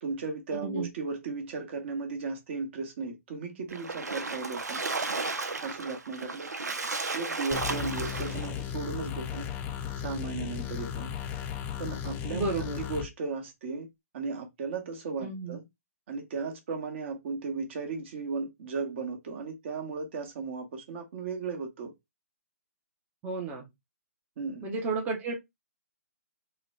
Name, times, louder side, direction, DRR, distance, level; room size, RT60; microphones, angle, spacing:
voice 1, 0.0-4.8 5.6-6.5 7.1-9.5 10.0-11.1 11.8-13.9 14.1-15.6 16.1-21.9 24.4-24.7, right 4 dB, 45° right, 1.1 m, -36 dB
Splash splatter, 3.7-8.6, right 3 dB, 90° right, 0.7 m, -34 dB
sound 1, 7.5-13.1, left 10 dB, 15° left, 0.4 m, -35 dB
voice 2, 12.3-12.8 15.2-15.6 23.2-23.7 24.6-25.3, right 3 dB, 15° right, 0.7 m, -32 dB
3.8 x 2.2 x 3.2 m
hypercardioid pair, 145°, 9 cm